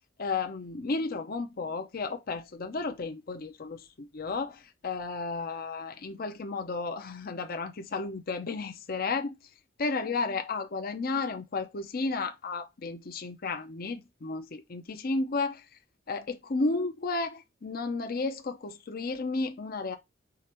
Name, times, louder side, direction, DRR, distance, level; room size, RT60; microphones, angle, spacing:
voice 1, 0.2-9.4 9.8-15.6 16.1-20.0, left 3 dB, 50° left, 0.6 m, -33 dB
4.9 x 2.5 x 4.3 m
head